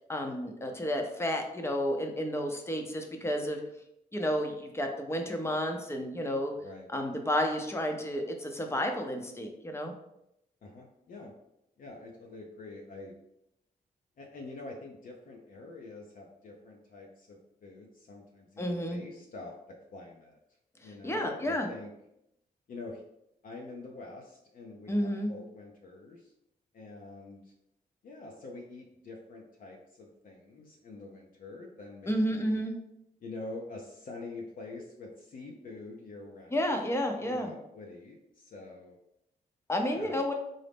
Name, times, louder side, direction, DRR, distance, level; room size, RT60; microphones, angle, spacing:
voice 1, 0.1-3.6 4.1-6.5 6.9-9.9 18.6-19.0 20.8-21.7 24.9-25.3 32.1-32.7 36.5-37.5 39.7-40.3, equal, 15° left, 3 dB, 0.6 m, -31 dB
voice 2, 10.6-11.3 11.8-13.1 14.2-20.4 20.8-21.9 22.7-23.0 23.4-26.3 26.7-27.5 28.0-32.6 33.2-36.8 37.2-39.0 39.8-40.2, left 2 dB, 60° left, 0 dB, 0.5 m, -46 dB
3.8 x 2.0 x 3.4 m, 0.82 s
cardioid pair, 75°, 16 cm